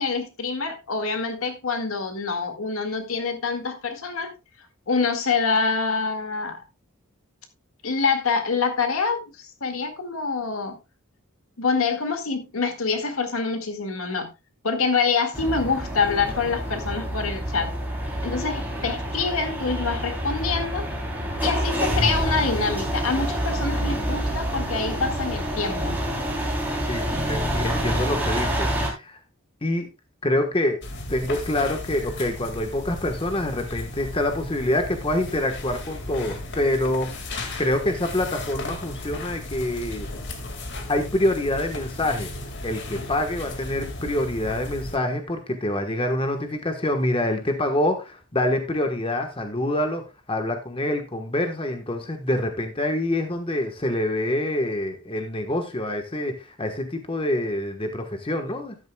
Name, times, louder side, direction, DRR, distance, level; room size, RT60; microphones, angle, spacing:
voice 1, 0.0-4.3 4.9-6.6 7.8-10.8 11.6-14.3 14.6-17.7 18.2-20.9 21.4-26.0, left 4 dB, 80° left, 2.0 m, -26 dB
sound 1, 15.3-28.9, equal, 10° right, 3.3 m, -27 dB
voice 2, 26.8-29.2 29.6-29.9 30.2-30.8 31.1-37.1 37.6-40.1 40.9-42.3 42.6-58.8, left 1 dB, 25° left, 1.2 m, -26 dB
sound 2, 30.8-45.0, left 2 dB, 55° left, 2.0 m, -35 dB
12.5 x 10.5 x 2.3 m
head